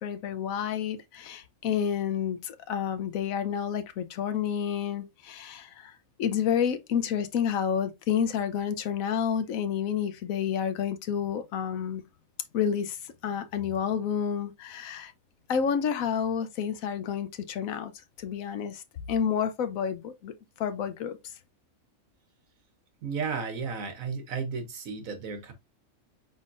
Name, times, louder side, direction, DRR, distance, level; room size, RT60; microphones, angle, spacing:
voice 1, 0.0-12.0 12.5-15.1 15.5-17.9 18.2-18.8 19.1-20.3 20.6-21.2, left 8 dB, 75° left, 1.1 m, -29 dB
voice 2, 23.0-25.5, right 5 dB, 70° right, 1.3 m, -33 dB
5.0 x 3.8 x 2.5 m
omnidirectional pair, 1.5 m